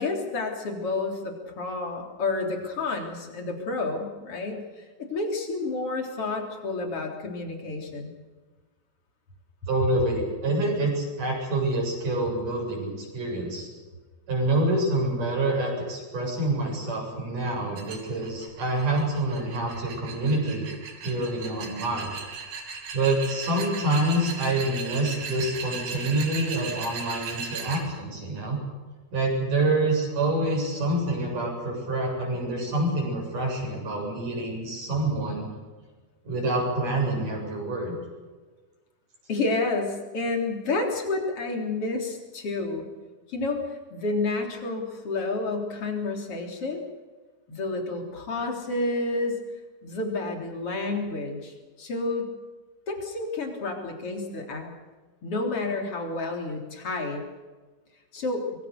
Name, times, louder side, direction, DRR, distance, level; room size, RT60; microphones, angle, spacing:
voice 1, 0.0-8.1 39.3-42.9 43.3-43.6 43.9-46.9 47.5-49.4 49.8-52.3 52.9-54.7 55.2-57.2 58.1-58.4, left 3 dB, 35° left, 2 dB, 4.3 m, -30 dB
voice 2, 9.7-13.7 14.3-20.7 21.0-22.1 22.9-28.6 29.1-35.5 36.2-38.0, right 2 dB, 55° right, 0 dB, 9.2 m, -27 dB
sound 1, 17.8-27.8, right 5 dB, 90° right, 4.9 m, -37 dB
25.5 x 23.0 x 6.8 m, 1.3 s
omnidirectional pair, 4.4 m